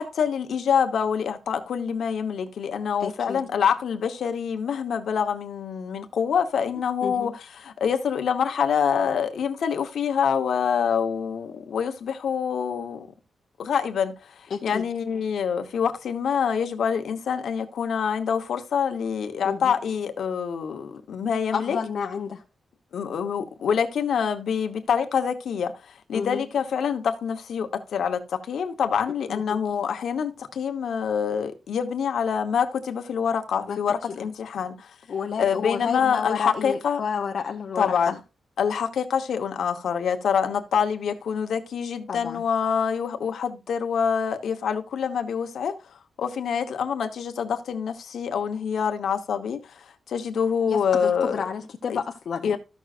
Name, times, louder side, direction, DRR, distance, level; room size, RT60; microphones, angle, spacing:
voice 1, 0.0-7.3 7.6-13.1 13.6-21.8 22.9-34.9 35.4-37.0 37.8-38.2 38.6-45.8 46.2-51.4 51.9-52.0 52.4-52.6, left 7 dB, 70° left, 1.1 m, -26 dB
voice 2, 3.0-3.4 7.0-7.4 14.5-14.9 19.4-19.7 21.5-22.4 26.1-26.5 29.3-29.6 33.7-33.8 34.2-34.3 35.1-38.2 42.1-42.4 50.7-52.6, left 6 dB, 55° left, 0.7 m, -30 dB
13.5 x 6.3 x 2.5 m
wide cardioid pair, 175°, 0 cm